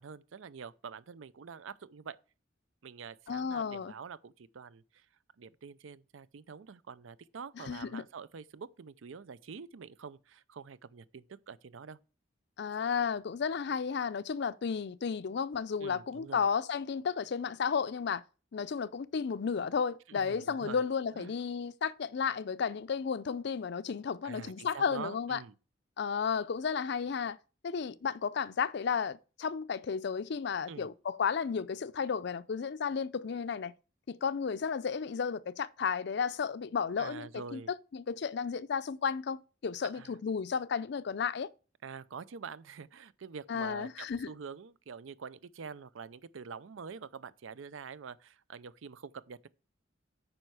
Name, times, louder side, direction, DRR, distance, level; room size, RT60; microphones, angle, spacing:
voice 1, 0.0-2.2 2.8-5.1 5.4-12.0 15.8-16.5 20.1-20.8 21.1-21.3 24.2-25.5 30.7-30.9 37.0-37.7 39.9-40.2 41.8-49.5, right 6 dB, 85° right, 0.5 m, -46 dB
voice 2, 3.3-3.9 7.6-8.0 12.6-18.2 18.5-25.4 26.0-27.4 27.6-33.7 34.1-41.5 43.5-44.3, left 6 dB, 60° left, 0.4 m, -33 dB
8.9 x 5.4 x 4.7 m
head